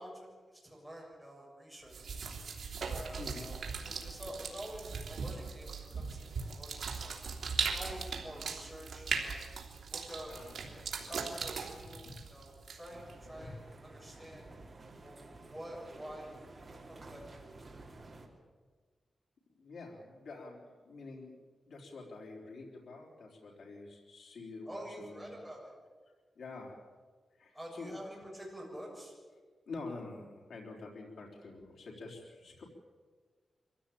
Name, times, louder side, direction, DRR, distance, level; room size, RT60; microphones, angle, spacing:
voice 1, 0.0-2.4 2.8-7.2 7.7-9.4 9.9-10.3 10.6-13.5 13.9-14.4 15.0-15.2 15.5-17.2 17.5-17.7 24.7-25.7 27.5-29.2, equal, ahead, -3 dB, 7.1 m, -48 dB
sound 1, 1.9-13.1, right 5 dB, 70° right, 3.1 m, -39 dB
voice 2, 3.2-3.5 10.2-10.6 12.0-12.2 13.4-13.5 14.0-14.1 19.6-21.4 21.7-25.3 26.4-26.9 27.3-28.0 29.7-32.6, left 3 dB, 85° left, -2 dB, 4.0 m, -47 dB
sound 2, 12.9-18.3, right 2 dB, 30° right, 2.9 m, -52 dB
24.0 x 16.0 x 8.8 m, 1.5 s
wide cardioid pair, 165°, 0 cm